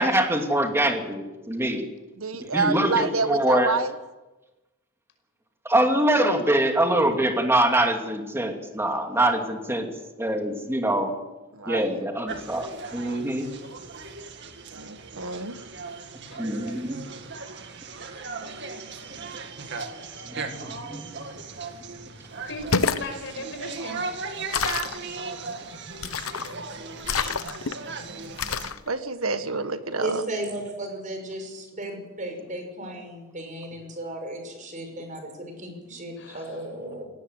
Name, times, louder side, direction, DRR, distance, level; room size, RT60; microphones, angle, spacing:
voice 1, 0.0-1.8 2.5-3.7 5.6-9.9 10.2-11.1 11.7-13.5 16.3-17.0 20.3-21.0, right 1 dB, 10° right, 3 dB, 2.7 m, -24 dB
voice 2, 2.2-3.9 11.5-12.0 14.7-15.6 28.9-30.2, right 4 dB, 80° right, 9 dB, 1.7 m, -28 dB
sound 1, 12.3-28.7, right 4 dB, 55° right, 2.1 m, -37 dB
voice 3, 22.4-24.0 36.2-36.7, left 2 dB, 65° left, 5 dB, 5.6 m, -37 dB
sound 2, 22.5-23.1 24.5-25.0 26.0-26.5 27.0-27.7 28.4-28.8, left 5 dB, 80° left, 1.0 m, -27 dB
voice 4, 30.0-37.1, right 1 dB, 40° right, 4 dB, 5.9 m, -35 dB
18.5 x 18.0 x 8.1 m, 1.1 s
head